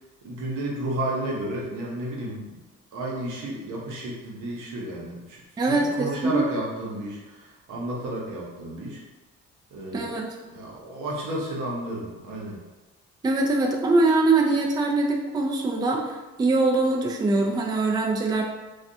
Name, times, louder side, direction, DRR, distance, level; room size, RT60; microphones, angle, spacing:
voice 1, 0.2-2.6 2.9-9.0 9.7-10.2 10.5-12.6, right 1 dB, 80° right, -3 dB, 0.8 m, -32 dB
voice 2, 5.6-6.4 9.9-10.3 13.2-18.4, right 2 dB, 15° right, 0 dB, 0.3 m, -23 dB
2.4 x 2.2 x 2.6 m, 1.2 s
cardioid pair, 90°, 30 cm